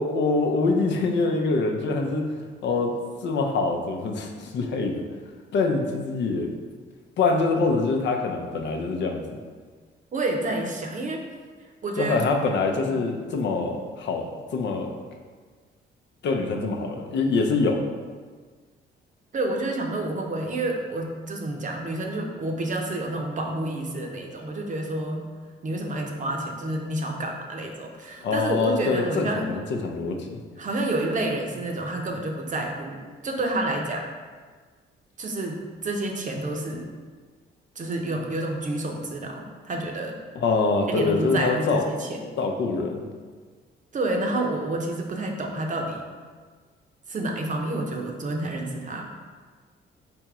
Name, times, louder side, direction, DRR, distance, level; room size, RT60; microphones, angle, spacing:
voice 1, 0.0-2.9 3.2-5.0 5.5-6.5 7.2-9.4 12.0-14.9 16.2-17.8 28.2-30.4 40.4-41.8 42.4-43.0, left 3 dB, 65° left, 2 dB, 0.6 m, -25 dB
voice 2, 10.1-11.2 11.8-12.2 12.9-13.0 19.3-25.3 25.6-29.5 30.6-34.1 35.2-36.9 37.8-40.2 40.9-42.3 43.9-46.0 47.1-49.1, right 2 dB, 40° right, 1 dB, 0.7 m, -29 dB
3.5 x 3.0 x 4.7 m, 1.5 s
cardioid pair, 90°, 20 cm